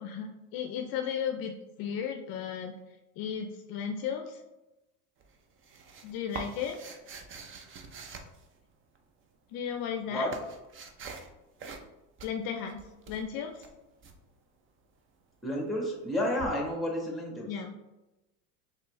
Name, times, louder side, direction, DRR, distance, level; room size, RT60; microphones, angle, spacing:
voice 1, 0.0-2.8 3.2-4.4 6.0-6.8 9.5-10.3 12.2-13.6 17.5-17.8, left 7 dB, 55° left, 4 dB, 0.5 m, -35 dB
sound 1, 5.2-9.0 9.7-11.3 11.6-11.9 12.2-14.2 16.4-16.5, right 4 dB, 30° right, 0.5 m, -45 dB
voice 2, 15.4-17.5, left 1 dB, ahead, 0 dB, 1.3 m, -31 dB
4.3 x 3.1 x 3.1 m, 1.0 s
supercardioid pair, 105°, 44 cm